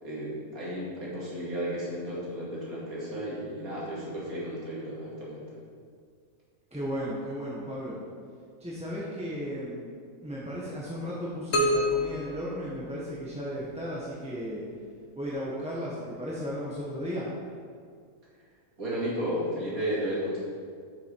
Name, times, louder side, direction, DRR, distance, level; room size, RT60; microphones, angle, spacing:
voice 1, 0.0-5.6 18.8-20.4, equal, 70° right, -6 dB, 2.8 m, -33 dB
voice 2, 6.7-8.0 8.6-9.9 10.2-14.6 15.1-17.3, equal, 5° right, -7 dB, 1.0 m, -35 dB
sound 1, 11.5-13.4, left 1 dB, 60° left, 1.2 m, -28 dB
8.0 x 7.1 x 4.6 m, 2.1 s
omnidirectional pair, 1.6 m